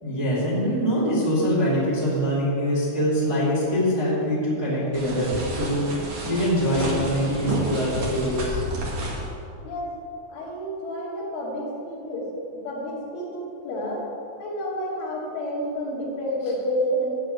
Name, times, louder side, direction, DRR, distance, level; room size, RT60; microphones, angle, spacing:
voice 1, 0.0-8.6, equal, 5° right, -8 dB, 2.0 m, -24 dB
sound 1, 4.9-9.3, right 1 dB, 50° right, 1.8 m, -30 dB
voice 2, 9.6-10.0 10.3-12.3 12.6-14.1 14.4-17.2, equal, 75° left, -6 dB, 5.0 m, -29 dB
14.0 x 4.9 x 9.0 m, 2.7 s
omnidirectional pair, 5.6 m